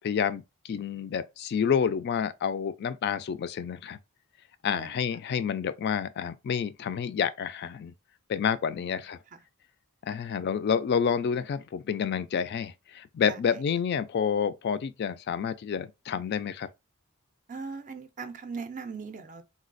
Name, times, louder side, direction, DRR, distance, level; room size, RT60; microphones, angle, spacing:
voice 1, 0.0-4.0 4.6-7.9 8.3-9.2 10.0-16.7, left 7 dB, 50° left, 0.3 m, -29 dB
voice 2, 8.7-9.4 13.3-13.6 17.5-19.4, right 4 dB, 35° right, 0.4 m, -40 dB
4.0 x 2.2 x 2.5 m
head